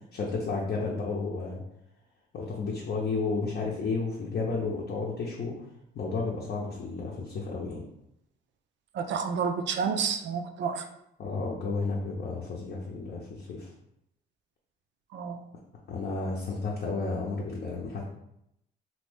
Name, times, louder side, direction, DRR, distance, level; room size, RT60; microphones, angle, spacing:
voice 1, 0.1-1.6 2.3-5.5 5.9-7.8 11.2-13.7 15.9-18.0, left 4 dB, 55° left, -3 dB, 0.6 m, -32 dB
voice 2, 8.9-10.8 15.1-15.4, right 6 dB, 65° right, 6 dB, 0.4 m, -30 dB
2.7 x 2.6 x 3.4 m, 0.80 s
cardioid pair, 90°, 20 cm